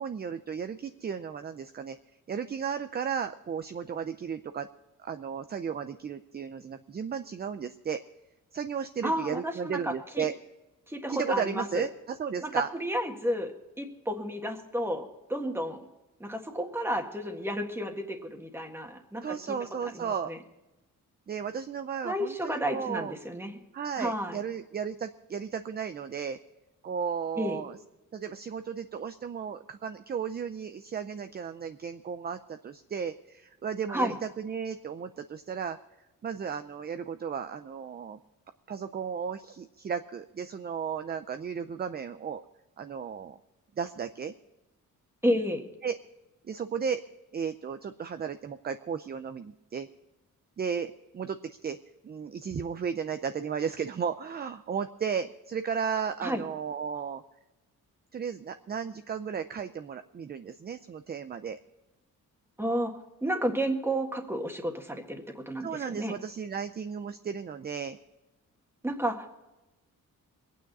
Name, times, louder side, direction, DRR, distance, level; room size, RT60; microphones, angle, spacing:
voice 1, 0.0-2.0 2.3-4.7 5.0-8.0 8.5-10.3 11.1-12.7 19.2-20.3 21.3-23.1 23.7-26.4 26.8-27.8 28.1-35.8 36.2-38.2 38.7-42.4 42.8-43.4 43.8-44.3 45.8-46.0 46.4-47.0 47.3-49.9 50.6-51.8 52.0-57.2 58.1-61.6 65.6-68.0, right 7 dB, 30° right, 9 dB, 0.5 m, -34 dB
voice 2, 9.0-10.3 10.9-11.8 12.4-13.5 13.8-15.9 16.2-19.3 19.8-20.4 22.0-23.6 24.0-24.4 27.4-27.6 33.9-34.2 45.2-45.6 56.2-56.4 62.6-62.9 63.2-66.1 68.8-69.3, equal, 5° right, 4 dB, 1.6 m, -31 dB
23.5 x 9.2 x 4.1 m, 1.0 s
wide cardioid pair, 175°, 33 cm